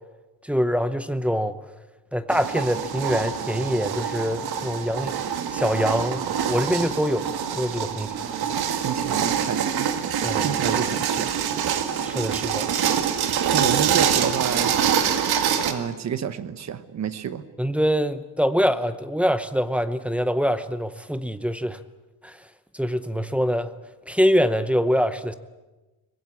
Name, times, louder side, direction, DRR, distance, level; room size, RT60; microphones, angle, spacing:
voice 1, 0.4-1.6 2.1-5.1 5.5-7.3 7.6-8.2 10.2-10.5 12.0-12.7 13.6-13.7 17.6-21.8 22.2-22.4 22.7-23.7 24.1-25.3, equal, 5° right, 10 dB, 0.7 m, -24 dB
sound 1, 2.3-15.7, right 8 dB, 80° right, 2.0 m, -25 dB
voice 2, 8.2-9.9 10.4-11.4 13.4-14.8 15.7-17.5, right 8 dB, 45° right, 12 dB, 1.1 m, -29 dB
23.5 x 20.5 x 8.4 m, 1.1 s
cardioid pair, 175°, 37 cm